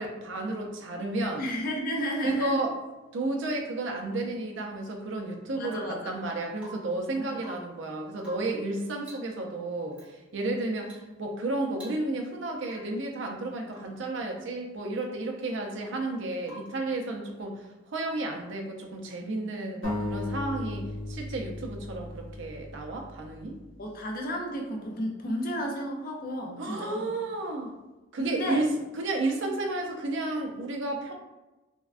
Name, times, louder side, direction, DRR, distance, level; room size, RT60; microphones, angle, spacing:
voice 1, 0.0-1.4 2.2-2.8 3.1-23.6 26.6-27.7 28.1-31.1, right 2 dB, 60° right, 2 dB, 0.5 m, -32 dB
voice 2, 1.4-2.6 5.5-6.2 7.2-7.4 23.8-27.1 28.2-28.6, equal, 45° left, 1 dB, 0.4 m, -32 dB
Rain / Water tap faucet / Drip, 5.6-6.0 6.6-7.0 7.3-7.8 8.2-8.6 9.0-9.4 9.9-10.1 10.8-11.1 11.4-11.5 11.7-12.3 12.6-13.0 13.7-14.0 16.4-16.9 18.8-18.9, right 1 dB, 5° right, 0.7 m, -49 dB
sound 1, 19.8-23.4, left 2 dB, 70° left, 1.2 m, -36 dB
3.3 x 2.1 x 2.4 m, 1.1 s
head